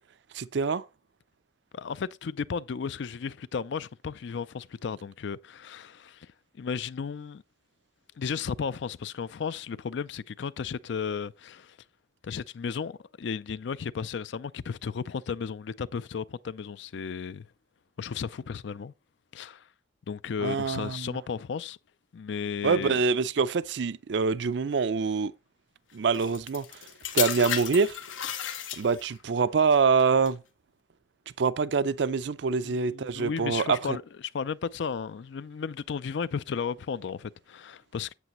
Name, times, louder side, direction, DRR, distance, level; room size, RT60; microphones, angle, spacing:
voice 1, 0.3-0.8 20.4-21.1 22.6-25.3 25.9-26.6 27.1-28.0 28.8-30.4 31.4-34.0, right 5 dB, 65° right, 0.4 m, -25 dB
voice 2, 1.7-6.3 6.6-7.4 8.2-11.8 12.2-17.5 18.0-18.9 19.3-19.7 20.1-21.8 22.1-23.0 32.6-34.0 34.3-38.1, left 6 dB, 70° left, 0.4 m, -34 dB
sound 1, 26.1-29.2 30.0-30.3, left 9 dB, 90° left, 1.2 m, -33 dB
8.2 x 7.9 x 3.0 m
head